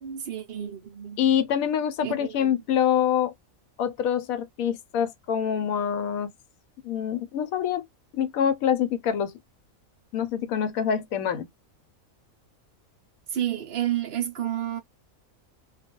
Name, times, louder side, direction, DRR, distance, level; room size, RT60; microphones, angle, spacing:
voice 1, 0.0-1.2 2.0-2.6 13.3-14.8, right 11 dB, 70° right, 0.5 m, -30 dB
voice 2, 1.2-3.3 3.8-6.3 6.8-7.9 8.1-9.3 10.1-11.5, left 8 dB, 90° left, 1.0 m, -25 dB
2.3 x 2.2 x 2.9 m
omnidirectional pair, 1.4 m